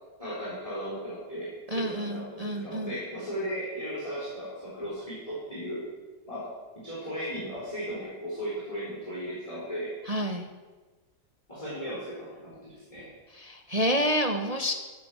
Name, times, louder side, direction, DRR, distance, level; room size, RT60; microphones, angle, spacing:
voice 1, 0.2-5.8 6.3-6.5 6.8-9.9 11.5-13.1, equal, 15° left, -7 dB, 4.4 m, -36 dB
voice 2, 1.7-2.9 10.1-10.5 13.3-14.7, equal, 40° right, 4 dB, 0.5 m, -28 dB
15.0 x 9.8 x 6.3 m, 1.3 s
omnidirectional pair, 2.0 m